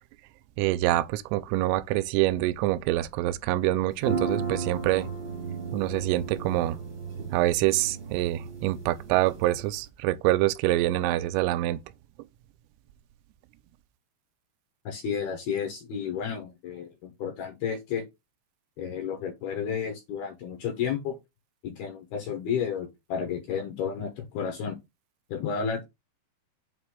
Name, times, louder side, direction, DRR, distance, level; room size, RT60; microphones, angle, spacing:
voice 1, 0.6-5.1 5.7-6.8 7.3-11.8, right 16 dB, 90° right, 3.2 m, -25 dB
sound 1, 3.9-9.9, right 5 dB, 70° right, 1.1 m, -35 dB
voice 2, 14.9-18.0 18.8-21.2 21.6-24.8 25.3-25.8, left 7 dB, 75° left, 2.4 m, -32 dB
7.8 x 2.6 x 4.9 m
omnidirectional pair, 5.8 m